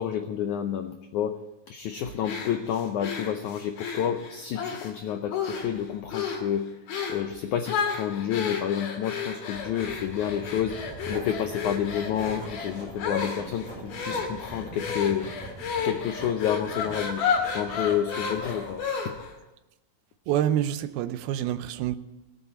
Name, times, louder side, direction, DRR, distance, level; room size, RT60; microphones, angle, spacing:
voice 1, 0.0-1.4 1.7-6.7 7.1-10.8 11.1-15.3 15.8-17.3 17.5-19.2, left 9 dB, 90° left, 1.7 m, -29 dB
sound 1, 2.2-4.9 5.3-5.8 6.1-6.5 6.9-7.3 7.7-19.3, left 6 dB, 70° left, 3.9 m, -32 dB
Writing, 9.5-18.9, right 2 dB, 10° right, 5.8 m, -43 dB
voice 2, 20.3-22.0, right 11 dB, 80° right, 2.6 m, -27 dB
18.5 x 8.2 x 8.5 m
omnidirectional pair, 4.5 m